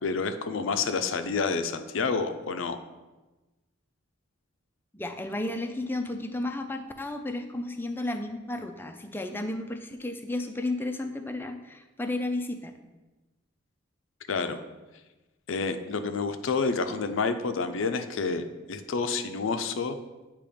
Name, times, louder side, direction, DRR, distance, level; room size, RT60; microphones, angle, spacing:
voice 1, 0.0-2.8 14.3-14.6 15.5-20.0, left 4 dB, 75° left, 9 dB, 0.5 m, -29 dB
voice 2, 4.9-12.7, left 2 dB, 10° left, 6 dB, 0.4 m, -33 dB
8.4 x 3.0 x 5.0 m, 1.1 s
head